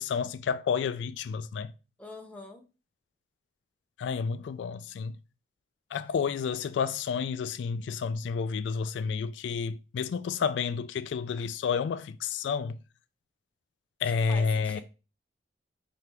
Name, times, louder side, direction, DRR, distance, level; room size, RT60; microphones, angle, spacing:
voice 1, 0.0-1.7 4.0-5.2 5.9-12.8 14.0-14.8, left 6 dB, 90° left, 0.3 m, -30 dB
voice 2, 2.0-2.6 14.0-14.8, left 2 dB, 10° left, 0.7 m, -44 dB
4.9 x 3.4 x 2.9 m
head